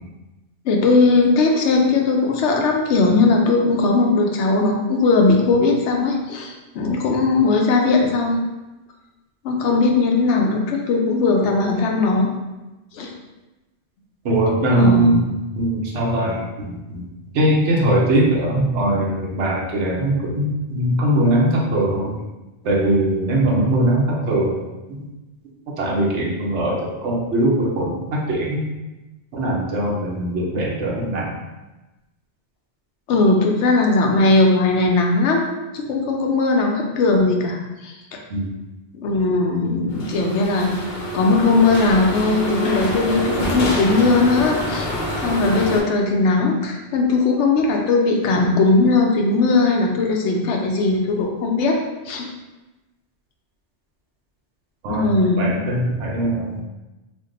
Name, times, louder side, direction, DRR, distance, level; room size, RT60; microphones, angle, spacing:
voice 1, 0.7-8.4 9.4-12.3 12.9-13.1 14.8-15.1 33.1-38.0 39.0-40.7 41.1-44.9 45.2-51.8 52.0-52.3 54.9-55.5, left 3 dB, 85° left, 1 dB, 0.9 m, -18 dB
voice 2, 14.2-15.3 15.6-17.0 17.3-22.1 22.6-24.6 24.9-25.1 25.8-28.6 29.3-31.3 38.3-38.5 54.8-55.1 55.4-56.6, right 1 dB, 90° right, -3 dB, 1.0 m, -20 dB
sound 1, 39.9-45.8, equal, 55° left, 0.6 m, -26 dB
2.6 x 2.2 x 3.7 m, 1.1 s
omnidirectional pair, 1.2 m